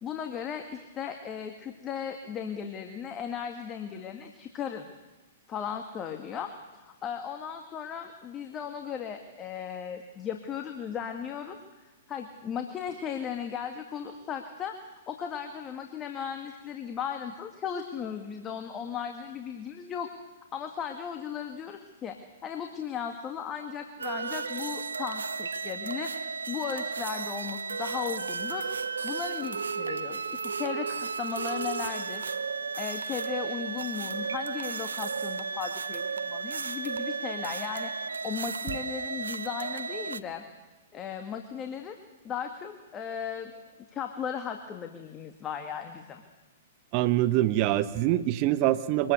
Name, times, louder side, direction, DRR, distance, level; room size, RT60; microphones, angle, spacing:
voice 1, 0.0-4.9 5.5-11.6 12.1-14.8 15.1-20.1 20.5-22.2 22.4-28.7 29.0-32.3 32.8-40.4 40.9-42.0 42.2-43.6 43.9-46.2, left 7 dB, 25° left, 5 dB, 1.9 m, -36 dB
sound 1, 24.0-40.2, right 5 dB, 85° right, 0.8 m, -34 dB
voice 2, 46.9-49.1, right 14 dB, 40° right, 13 dB, 1.2 m, -24 dB
24.5 x 20.0 x 8.2 m, 1.1 s
hypercardioid pair, 115°, 0 cm